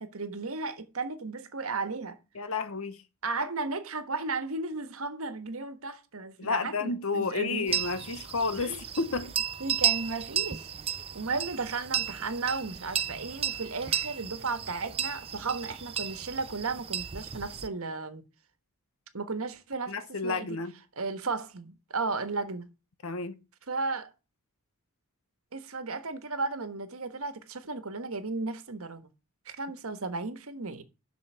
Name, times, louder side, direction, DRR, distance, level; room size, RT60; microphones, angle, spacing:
voice 1, 0.0-2.2 3.2-7.7 8.6-8.8 9.6-10.7 11.1-18.2 19.1-19.9 20.2-20.6 21.0-22.7 23.7-24.1 25.5-29.1 29.4-30.8, right 3 dB, 70° right, 1.4 m, -34 dB
voice 2, 2.3-3.0 6.4-9.4 19.9-20.7 23.0-23.4, left 4 dB, 65° left, 1.0 m, -31 dB
sound 1, 7.7-17.7, right 9 dB, 25° right, 0.4 m, -33 dB
7.9 x 6.1 x 7.5 m
head